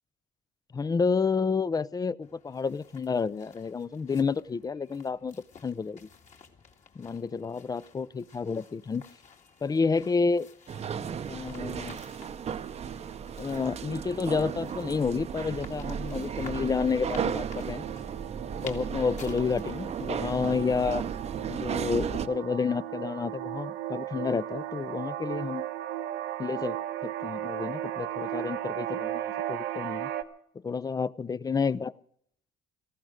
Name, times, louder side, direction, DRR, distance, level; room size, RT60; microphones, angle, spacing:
voice 1, 0.7-5.4 5.6-6.1 7.0-9.0 9.6-10.5 11.3-12.0 13.4-17.8 18.6-21.0 21.5-25.7 26.4-30.1 30.6-31.9, left 5 dB, 20° left, 18 dB, 0.5 m, -30 dB
sound 1, 2.2-20.8, left 6 dB, 45° left, 2.1 m, -54 dB
sound 2, 10.7-22.3, right 7 dB, 40° right, 0.8 m, -35 dB
sound 3, 12.5-30.2, right 12 dB, 85° right, 1.3 m, -37 dB
18.0 x 14.5 x 5.0 m, 0.70 s
cardioid pair, 110°, 17 cm